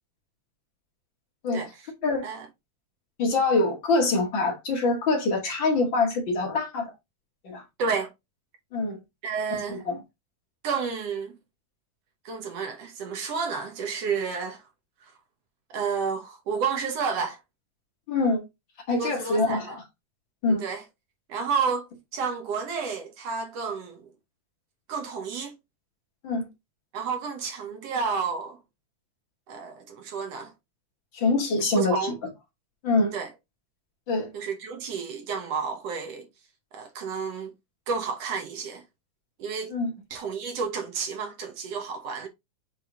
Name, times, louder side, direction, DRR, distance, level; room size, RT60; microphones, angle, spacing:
voice 1, 3.2-6.9 7.4-7.6 8.7-9.0 9.7-10.0 18.1-18.4 18.9-19.8 20.4-20.6 26.2-26.5 31.1-32.1 32.8-33.1 34.1-34.3 39.7-39.9, left 3 dB, 40° left, 2.4 m, -24 dB
voice 2, 7.8-8.1 9.2-9.8 10.6-11.4 12.3-14.6 15.7-17.4 19.0-19.8 20.5-20.8 21.3-24.1 24.9-25.6 26.9-28.6 29.5-30.5 31.8-32.2 33.1-33.3 34.3-36.3 36.7-37.5 37.9-38.8 39.4-39.7 40.1-42.3, right 5 dB, 60° right, 1.9 m, -31 dB
7.5 x 3.6 x 3.5 m
omnidirectional pair, 3.6 m